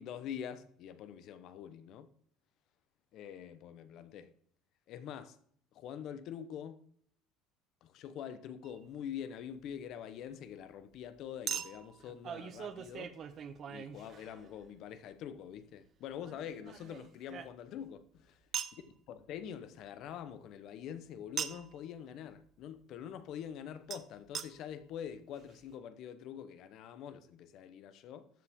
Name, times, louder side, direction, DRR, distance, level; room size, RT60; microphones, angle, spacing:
voice 1, 0.0-2.1 3.1-4.3 4.9-5.4 5.7-6.8 7.8-13.2 13.7-18.3 19.1-28.3, left 9 dB, 50° left, 0.8 m, -45 dB
Chink clink, 8.6-8.8 11.5-14.6 16.2-17.9 18.5-18.8 21.4-21.8 23.9-24.0 24.3-24.5 25.1-25.2 25.4-25.5, right 8 dB, 35° right, 0.7 m, -41 dB
13.5 x 7.4 x 3.6 m
cardioid pair, 155°, 0 cm